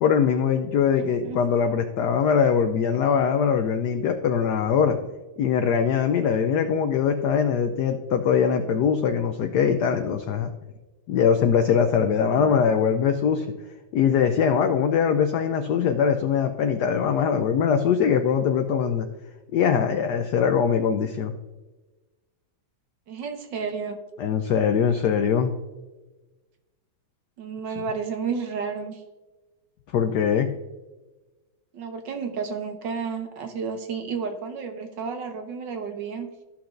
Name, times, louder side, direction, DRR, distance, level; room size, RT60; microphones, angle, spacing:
voice 1, 0.0-5.1 5.4-10.5 11.1-13.5 13.9-19.1 19.5-21.3 24.2-25.5 29.9-30.5, left 7 dB, 80° left, 7 dB, 0.9 m, -22 dB
voice 2, 0.9-1.4 12.2-12.8 23.1-24.0 27.4-29.0 31.7-36.3, right 5 dB, 65° right, 5 dB, 1.3 m, -32 dB
14.0 x 5.8 x 2.5 m, 1.2 s
omnidirectional pair, 2.3 m